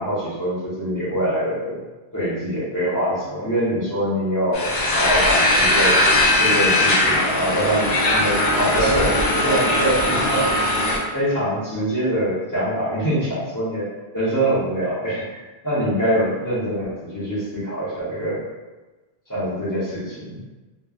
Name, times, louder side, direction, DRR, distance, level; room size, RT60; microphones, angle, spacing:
voice 1, 0.0-1.8 2.1-6.0 6.4-10.9 11.1-15.4 15.6-18.4 19.3-20.4, right 1 dB, 20° left, -9 dB, 0.8 m, -24 dB
sound 1, 4.5-11.0, left 1 dB, 50° left, 0.5 m, -19 dB
3.0 x 2.0 x 2.4 m, 1.2 s
omnidirectional pair, 1.0 m